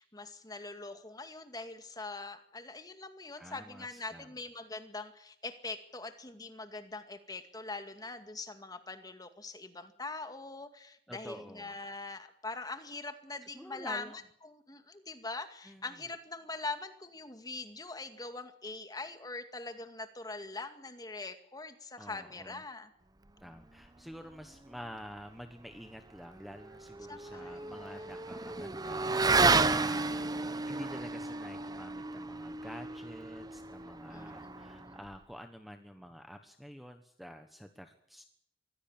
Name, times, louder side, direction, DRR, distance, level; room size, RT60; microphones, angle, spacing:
voice 1, 0.0-14.0 14.4-22.9 27.1-28.1 34.1-35.0, left 3 dB, 20° left, 8 dB, 2.2 m, -43 dB
voice 2, 3.4-4.3 11.1-11.8 13.4-14.2 15.6-15.9 22.0-22.6 23.4-38.2, equal, ahead, 7 dB, 1.3 m, -49 dB
Motorcycle / Accelerating revving vroom, 26.4-35.1, right 3 dB, 20° right, 0.8 m, -32 dB
24.0 x 16.5 x 8.9 m, 0.67 s
head